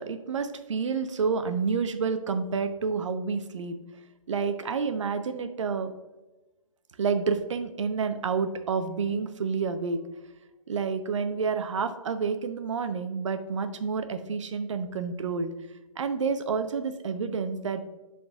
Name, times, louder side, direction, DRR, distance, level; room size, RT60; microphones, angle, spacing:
voice 1, 0.0-3.8 4.3-5.9 7.0-10.0 10.7-15.5 16.0-17.8, right 5 dB, 60° right, 9 dB, 0.7 m, -29 dB
11.5 x 3.9 x 2.3 m, 1.1 s
hypercardioid pair, 160°, 18 cm